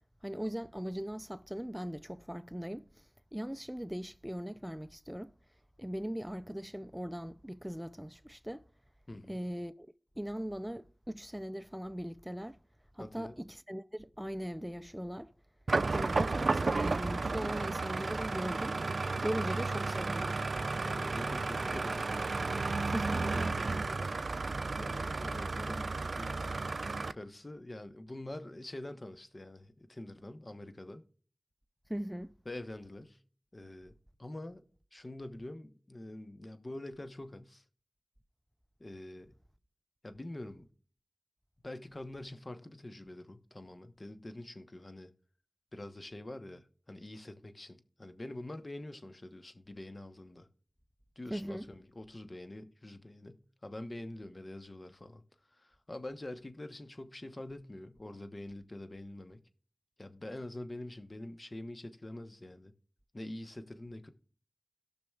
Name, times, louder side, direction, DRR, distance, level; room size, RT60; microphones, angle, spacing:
voice 1, 0.2-5.3 5.8-8.6 9.3-9.9 10.2-12.6 12.9-15.3 15.9-18.8 19.2-20.4 22.8-23.2 31.9-32.3 51.3-51.7, equal, 5° right, 0.5 m, -39 dB
voice 2, 9.1-9.4 13.0-13.4 20.8-22.1 22.4-24.1 24.7-26.4 27.1-31.0 32.4-33.2 33.5-34.6 34.9-37.6 38.8-39.3 40.0-40.7 41.6-45.1 45.7-50.5 51.2-55.2 55.5-59.4 60.0-62.7 63.1-64.1, left 1 dB, 45° left, 1.0 m, -45 dB
sound 1, 15.7-27.1, right 3 dB, 75° right, 0.4 m, -33 dB
17.5 x 6.0 x 2.4 m
cardioid pair, 40°, 0 cm